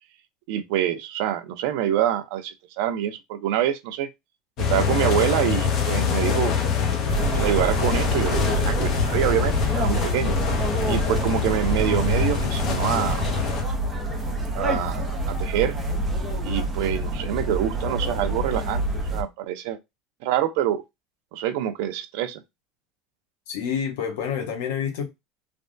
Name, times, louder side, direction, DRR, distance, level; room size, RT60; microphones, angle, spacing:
voice 1, 0.5-4.1 4.7-6.5 7.4-10.3 10.8-13.3 14.5-15.8 16.4-19.8 20.2-20.8 21.3-22.4, right 11 dB, 60° right, 0.4 m, -26 dB
sound 1, 4.6-13.6, left 6 dB, 35° left, 0.6 m, -25 dB
sound 2, 7.1-19.2, right 2 dB, 10° right, 0.6 m, -27 dB
voice 2, 23.5-25.1, left 7 dB, 80° left, 0.8 m, -28 dB
3.3 x 2.1 x 2.5 m
cardioid pair, 180°, 0 cm